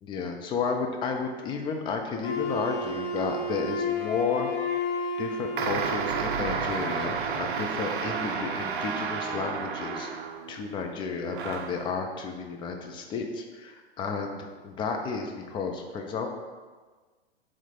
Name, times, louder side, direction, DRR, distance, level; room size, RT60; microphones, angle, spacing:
voice 1, 0.0-4.5 5.2-16.3, left 5 dB, 15° left, 3 dB, 0.5 m, -32 dB
Wind instrument woodwind instrument, 2.2-6.4, left 3 dB, 50° left, 1.1 m, -32 dB
sound 1, 5.6-10.6 11.3-11.9, right 6 dB, 55° right, 0.6 m, -31 dB
7.3 x 3.3 x 3.9 m, 1.4 s
figure-of-eight pair, 100°, 32 cm